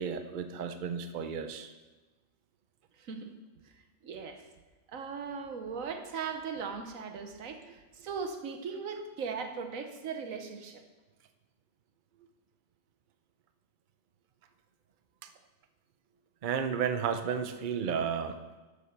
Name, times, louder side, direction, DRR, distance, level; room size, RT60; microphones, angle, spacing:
voice 1, 0.0-1.7 15.2-15.3 16.4-18.4, right 7 dB, 50° right, 8 dB, 0.7 m, -32 dB
voice 2, 3.0-3.3 4.0-4.4 4.9-10.8, right 5 dB, 85° right, 6 dB, 1.4 m, -38 dB
11.5 x 5.1 x 6.7 m, 1.2 s
omnidirectional pair, 1.4 m